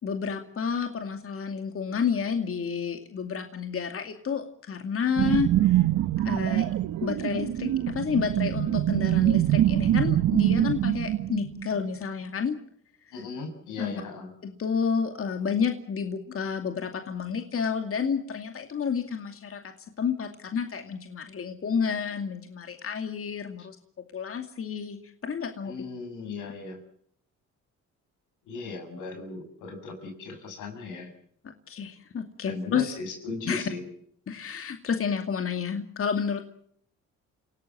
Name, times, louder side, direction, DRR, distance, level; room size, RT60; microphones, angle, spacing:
voice 1, 0.0-5.9 6.2-6.7 7.0-12.5 13.8-13.9 14.4-23.8 24.1-25.7 31.7-32.9 33.5-33.6 34.3-36.4, left 6 dB, 45° left, 5 dB, 2.4 m, -30 dB
sound 1, 5.2-11.9, right 13 dB, 70° right, 0.9 m, -24 dB
voice 2, 13.1-14.3 25.6-26.8 28.5-31.1 32.5-33.8, left 3 dB, 85° left, 5 dB, 7.2 m, -37 dB
29.0 x 18.0 x 7.5 m, 0.68 s
cardioid pair, 90°, 30 cm